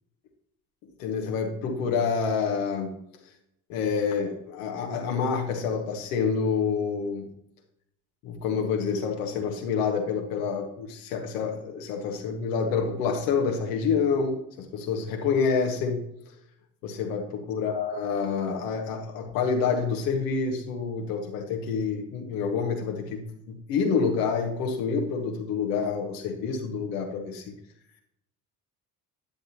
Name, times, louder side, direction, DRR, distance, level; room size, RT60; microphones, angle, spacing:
voice 1, 1.0-2.9 3.7-7.2 8.2-16.0 16.8-27.4, left 5 dB, 80° left, 2 dB, 1.8 m, -28 dB
12.0 x 10.0 x 2.9 m, 0.77 s
hypercardioid pair, 50°, 45 cm